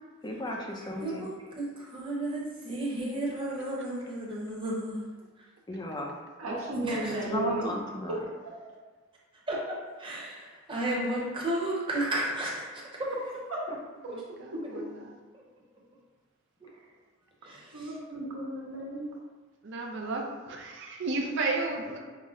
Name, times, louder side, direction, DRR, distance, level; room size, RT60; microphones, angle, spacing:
voice 1, 0.2-1.3 5.7-6.2 7.3-8.2 13.7-13.8, left 1 dB, 20° left, 0 dB, 0.5 m, -34 dB
voice 2, 1.6-5.1 6.8-7.3 9.5-12.6 17.4-17.9, right 1 dB, 25° right, -4 dB, 0.8 m, -33 dB
voice 3, 6.4-7.7 13.5-13.6 14.7-14.8 17.7-19.0, right 2 dB, 80° right, -5 dB, 1.2 m, -34 dB
voice 4, 14.1-15.0 19.6-22.0, right 3 dB, 60° right, 1 dB, 0.5 m, -33 dB
5.5 x 2.0 x 3.6 m, 1.4 s
head